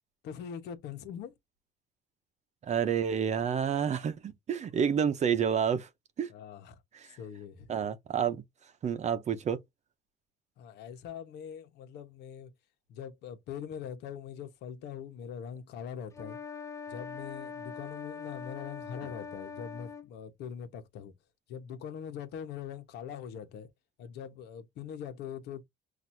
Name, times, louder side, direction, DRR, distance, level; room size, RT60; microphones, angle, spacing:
voice 1, 0.2-1.3 6.3-6.8 7.2-7.7 10.6-12.5 12.9-16.4 16.9-21.1 21.5-23.7 24.0-25.6, left 8 dB, 80° left, 1.1 m, -42 dB
voice 2, 2.6-5.9 6.2-6.3 6.9-7.2 7.7-8.4 8.8-9.6, right 7 dB, 45° right, 0.7 m, -29 dB
sound 1, 16.1-20.1, left 5 dB, 15° left, 0.5 m, -42 dB
5.9 x 2.6 x 2.7 m
cardioid pair, 110°, 17 cm